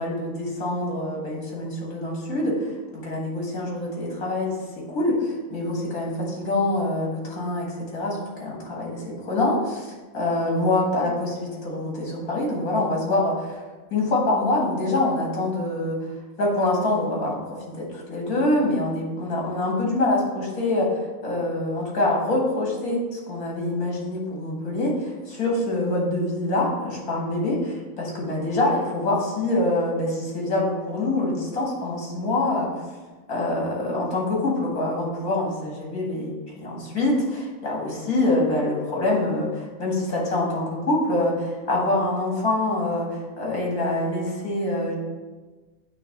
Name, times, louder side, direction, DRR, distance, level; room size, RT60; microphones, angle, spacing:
voice 1, 0.0-7.7 7.9-13.6 13.9-16.1 16.4-17.4 17.7-27.6 28.0-32.7 33.3-44.9, left 2 dB, 70° left, -3 dB, 2.3 m, -25 dB
8.5 x 3.0 x 6.5 m, 1.3 s
omnidirectional pair, 1.6 m